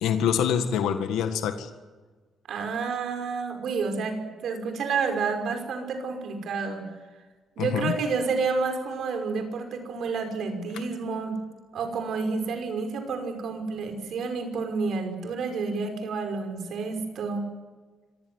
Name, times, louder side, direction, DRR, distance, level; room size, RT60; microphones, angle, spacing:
voice 1, 0.0-1.7 7.6-8.0, left 8 dB, 85° left, 8 dB, 1.6 m, -25 dB
voice 2, 2.5-6.9 7.6-11.4 11.7-17.5, right 4 dB, 70° right, 5 dB, 5.5 m, -29 dB
25.5 x 16.0 x 9.6 m, 1.4 s
cardioid pair, 90°, 0 cm